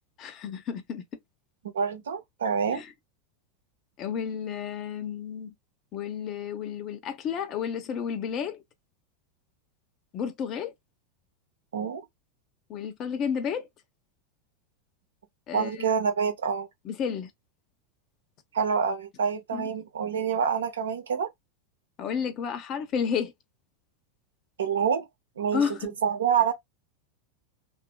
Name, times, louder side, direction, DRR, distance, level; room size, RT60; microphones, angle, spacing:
voice 1, 0.2-1.0 2.7-2.9 4.0-5.5 5.9-8.6 10.1-10.7 12.7-13.7 15.5-15.9 16.8-17.3 19.5-19.7 22.0-23.3 25.5-25.9, left 7 dB, 40° left, 0.7 m, -31 dB
voice 2, 1.7-2.8 11.7-12.0 15.5-16.7 18.5-21.3 24.6-25.1 25.4-25.6 26.0-26.5, right 7 dB, 80° right, 0.7 m, -27 dB
2.8 x 2.6 x 2.2 m
hypercardioid pair, 95°, 0 cm